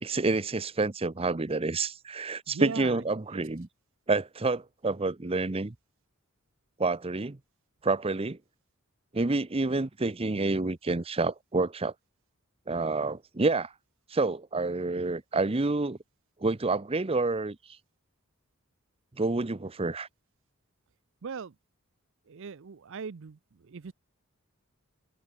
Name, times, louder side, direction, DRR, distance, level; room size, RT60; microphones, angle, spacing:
voice 1, 0.0-3.7 4.1-5.7 6.8-7.4 7.8-8.4 9.1-11.9 12.7-13.7 14.1-16.0 16.4-17.6 19.2-20.1, right 3 dB, 25° right, 0.7 m, -28 dB
voice 2, 2.5-3.0 3.3-3.4 21.2-21.5 22.3-23.9, right 5 dB, 60° right, 0.5 m, -39 dB
open air
head